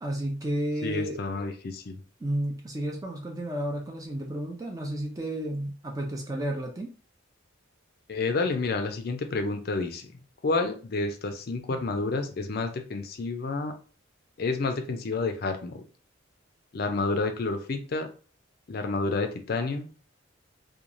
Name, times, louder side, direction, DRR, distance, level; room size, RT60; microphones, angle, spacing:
voice 1, 0.0-1.2 2.2-6.9, right 1 dB, 15° right, 0 dB, 0.4 m, -32 dB
voice 2, 0.8-2.0 8.1-10.1 10.4-13.7 14.4-15.8 16.7-18.1 18.7-19.9, left 3 dB, 50° left, 7 dB, 0.4 m, -29 dB
3.0 x 2.2 x 2.5 m, 0.37 s
head